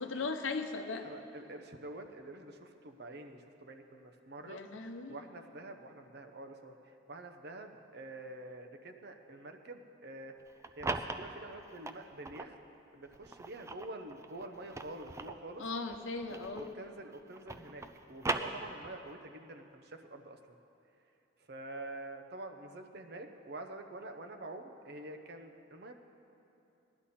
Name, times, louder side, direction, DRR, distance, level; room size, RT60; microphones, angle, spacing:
voice 1, 0.0-1.1 4.4-5.2 15.6-16.7, left 3 dB, 75° left, 6 dB, 0.8 m, -38 dB
voice 2, 1.0-4.6 5.1-10.3 10.8-12.6 12.9-15.6 16.3-20.4 21.5-25.9, right 2 dB, 55° right, 5 dB, 0.8 m, -47 dB
sound 1, 10.4-12.5 13.1-16.9 17.1-19.1, right 3 dB, 15° right, 0.4 m, -40 dB
17.5 x 11.5 x 4.3 m, 2.8 s
head